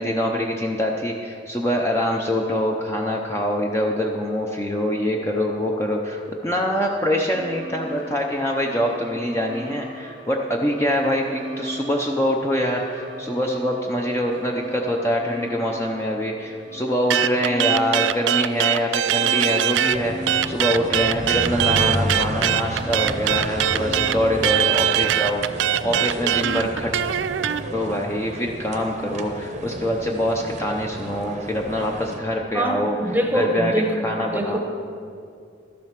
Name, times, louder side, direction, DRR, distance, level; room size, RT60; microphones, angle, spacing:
voice 1, 0.0-26.9 27.7-33.0 33.3-33.7 34.0-34.6, equal, 15° left, 0 dB, 0.6 m, -24 dB
sound 1, 7.2-25.5, equal, 80° left, 2.4 m, -39 dB
sound 2, 17.1-20.0 20.3-27.6, right 11 dB, 70° right, 0.3 m, -21 dB
sound 3, 19.9-32.2, right 1 dB, 40° right, 0.7 m, -32 dB
voice 2, 32.5-34.6, equal, 10° right, 3 dB, 0.9 m, -24 dB
12.5 x 7.7 x 5.8 m, 2.4 s
head